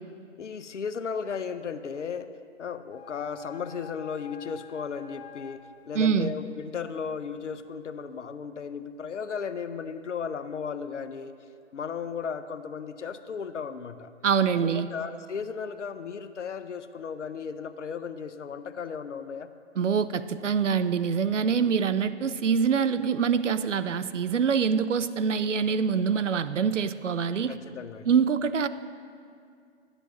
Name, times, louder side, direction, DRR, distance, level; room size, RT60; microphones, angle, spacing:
voice 1, 0.4-2.3 2.6-11.4 11.7-14.1 14.5-19.5 27.5-28.1, left 6 dB, 80° left, 11 dB, 0.6 m, -35 dB
sound 1, 2.9-5.6, left 8 dB, 20° left, 0.7 m, -48 dB
voice 2, 5.9-6.3 14.2-14.9 19.8-27.5 28.1-28.7, right 6 dB, 85° right, 13 dB, 0.5 m, -25 dB
11.5 x 9.6 x 3.0 m, 2.3 s
figure-of-eight pair, 125°, 36 cm